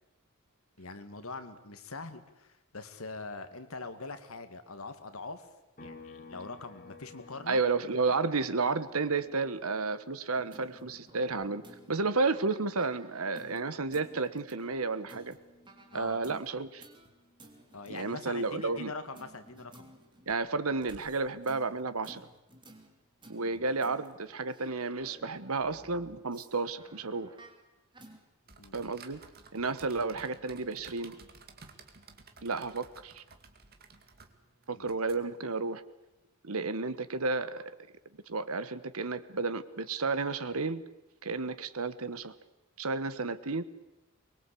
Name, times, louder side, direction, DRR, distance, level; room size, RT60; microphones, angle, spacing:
voice 1, 0.8-5.5 5.8-7.6 15.9-16.2 17.7-19.9 23.4-23.6 28.6-28.8 34.7-34.9, left 3 dB, 70° left, 9 dB, 2.1 m, -43 dB
sound 1, 5.8-19.3 19.7-21.9, left 3 dB, 40° left, 2.7 m, -57 dB
voice 2, 7.5-11.6 11.9-15.4 15.9-16.8 17.9-18.9 20.3-22.2 23.3-27.3 28.7-29.2 29.5-31.1 32.4-33.2 34.7-35.8 36.4-37.7 38.3-40.8 41.2-42.3 42.8-43.6, right 3 dB, 75° right, 13 dB, 1.3 m, -32 dB
sound 2, 10.3-13.6 13.9-15.4 15.6-17.1 17.4-20.4 20.8-26.5 26.8-27.6 27.9-28.2, right 1 dB, 20° right, 3.4 m, -55 dB
sound 3, 28.4-35.6, right 4 dB, 45° right, 2.3 m, -55 dB
24.0 x 21.5 x 8.5 m, 0.97 s
head